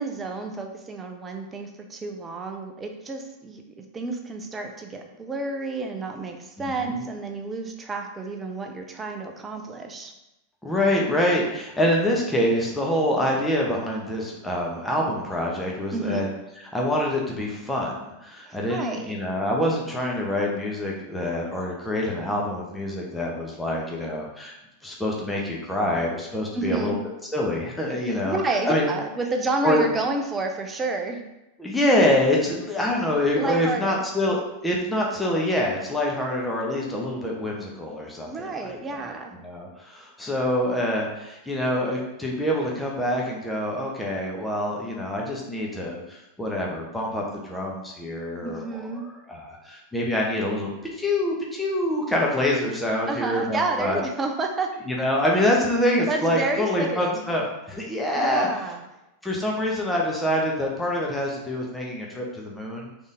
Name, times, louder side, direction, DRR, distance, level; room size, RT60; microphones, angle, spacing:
voice 1, 0.0-10.1 15.9-16.3 18.5-19.1 26.5-27.0 28.0-31.3 33.3-34.0 38.3-39.3 48.4-49.1 53.1-54.7 56.1-57.2 58.1-58.8, right 3 dB, 15° right, 3 dB, 0.7 m, -30 dB
voice 2, 6.6-7.0 10.6-16.3 16.6-24.5 24.8-27.0 27.3-28.4 28.6-28.9 29.6-29.9 31.6-39.0 39.4-50.7 51.0-54.0 54.9-58.5 59.2-62.9, left 1 dB, 5° left, -2 dB, 0.9 m, -26 dB
3.9 x 3.6 x 3.8 m, 0.92 s
figure-of-eight pair, 90°, 0 cm